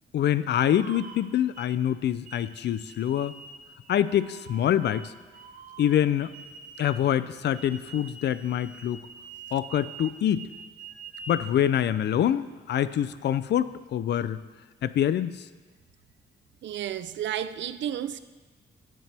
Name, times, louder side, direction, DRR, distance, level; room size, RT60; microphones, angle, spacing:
voice 1, 0.1-3.3 3.9-5.1 5.8-6.3 6.8-9.1 9.5-10.5 11.3-14.4 14.8-15.4, left 10 dB, 65° left, 0.4 m, -25 dB
sound 1, 0.6-1.7 2.3-7.1 7.5-11.5, right 4 dB, 45° right, 0.8 m, -46 dB
voice 2, 16.6-18.2, right 10 dB, 70° right, 0.5 m, -32 dB
18.5 x 7.6 x 3.4 m
wide cardioid pair, 170°, 19 cm